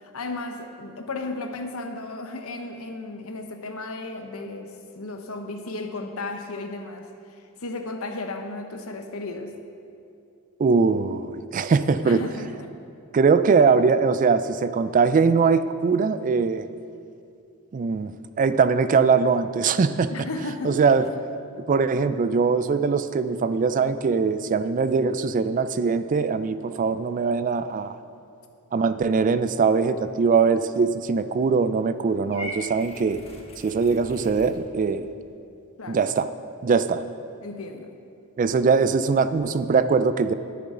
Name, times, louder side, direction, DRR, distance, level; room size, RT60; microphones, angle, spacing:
voice 1, 0.0-7.1 7.6-9.5 12.0-12.7 20.1-20.8 35.8-36.0 37.4-37.9, left 2 dB, 70° left, 5 dB, 1.0 m, -34 dB
voice 2, 10.6-12.2 13.1-16.7 17.7-18.1 18.4-20.1 20.6-21.1 21.5-28.0 28.7-33.2 33.6-35.1 35.9-36.3 36.6-37.0 38.4-40.3, right 5 dB, 40° right, 12 dB, 0.3 m, -21 dB
Purr / Meow, 32.3-34.5, equal, 30° left, 1.3 m, -40 dB
19.5 x 6.9 x 3.8 m, 2.5 s
head